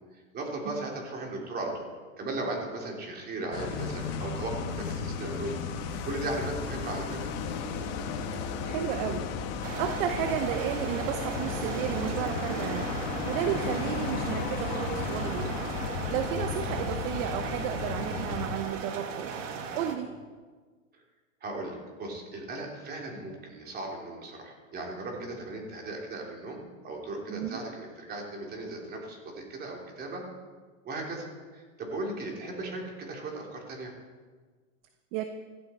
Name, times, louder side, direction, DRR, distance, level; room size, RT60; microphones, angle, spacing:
voice 1, 0.1-1.9 2.2-5.6 6.0-7.3 21.4-30.2 30.8-31.3 31.5-33.9, right 2 dB, 25° right, 0 dB, 3.2 m, -37 dB
sound 1, 3.5-18.5, left 5 dB, 50° left, 2.0 m, -35 dB
voice 2, 8.6-9.3 9.8-13.0 13.2-15.6 16.1-19.5 19.7-20.1 27.3-27.6 35.1-35.2, right 10 dB, 45° right, 8 dB, 1.0 m, -33 dB
sound 2, 9.6-19.9, right 5 dB, 65° right, 2.1 m, -37 dB
Fire, 10.9-18.5, left 2 dB, 5° left, 2.3 m, -41 dB
16.0 x 14.5 x 4.4 m, 1.4 s
supercardioid pair, 145°, 40 cm